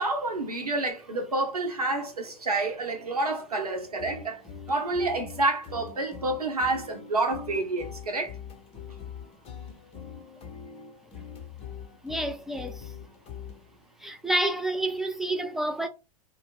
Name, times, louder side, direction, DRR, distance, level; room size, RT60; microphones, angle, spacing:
voice 1, 0.0-4.4 4.7-8.3, right 2 dB, 90° right, 0.8 m, -28 dB
sound 1, 3.8-13.8, left 7 dB, 30° left, 0.8 m, -43 dB
voice 2, 12.0-12.9 14.0-15.9, right 1 dB, ahead, 0.4 m, -29 dB
2.3 x 2.0 x 3.5 m
figure-of-eight pair, 90°, 19 cm